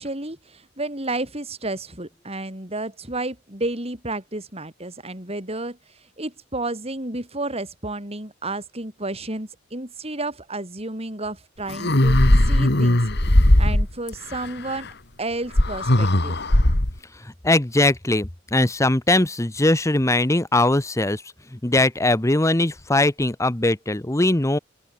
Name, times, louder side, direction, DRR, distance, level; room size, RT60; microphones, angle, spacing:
voice 1, 0.0-14.9 15.2-16.4, right 2 dB, 30° right, 5.9 m, -31 dB
sound 1, 11.7-14.1 15.6-17.0, left 1 dB, 55° left, 2.5 m, -17 dB
voice 2, 17.4-21.2 21.5-24.6, left 2 dB, 15° left, 0.9 m, -20 dB
open air
head